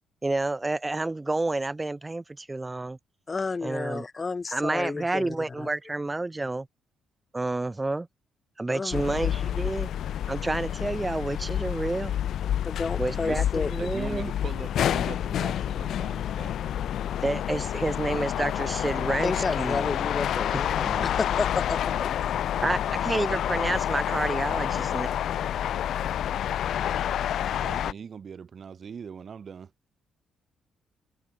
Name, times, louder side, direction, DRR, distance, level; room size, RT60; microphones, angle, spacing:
voice 1, 0.2-3.0 3.6-4.0 4.5-6.7 7.3-8.1 8.6-9.9 10.3-12.2 13.0-14.3 17.2-20.1 20.5-20.6 22.6-25.1, right 2 dB, 15° right, 2.4 m, -29 dB
voice 2, 3.3-5.7 8.7-9.0 12.6-13.7 19.2-22.1, left 4 dB, 30° left, 3.4 m, -31 dB
sound 1, 8.9-27.9, left 10 dB, 70° left, 0.5 m, -28 dB
voice 3, 13.1-16.6 20.5-21.1 27.6-29.7, right 6 dB, 45° right, 6.7 m, -41 dB
cardioid pair, 90°, 0 cm